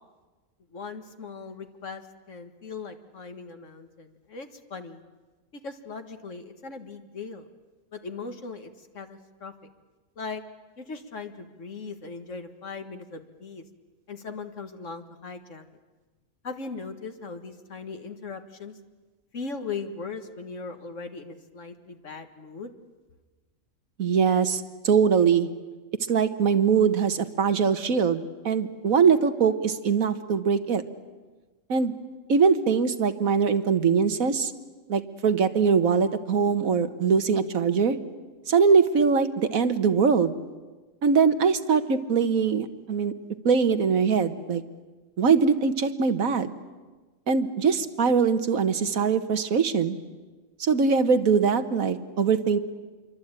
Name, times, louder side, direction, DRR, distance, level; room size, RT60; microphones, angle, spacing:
voice 1, 0.7-2.0 2.3-5.0 5.6-7.5 7.9-9.5 10.2-10.4 10.8-13.6 14.1-15.7 16.4-18.7 19.3-22.7, left 4 dB, 65° left, 7 dB, 2.1 m, -39 dB
voice 2, 24.0-25.5 26.1-30.8 31.7-31.9 32.3-34.5 34.9-38.0 38.5-40.3 41.0-43.1 43.4-44.6 45.2-46.5 47.3-50.0 50.6-52.6, right 6 dB, 85° right, 10 dB, 1.7 m, -22 dB
27.0 x 23.5 x 9.0 m, 1.3 s
omnidirectional pair, 1.4 m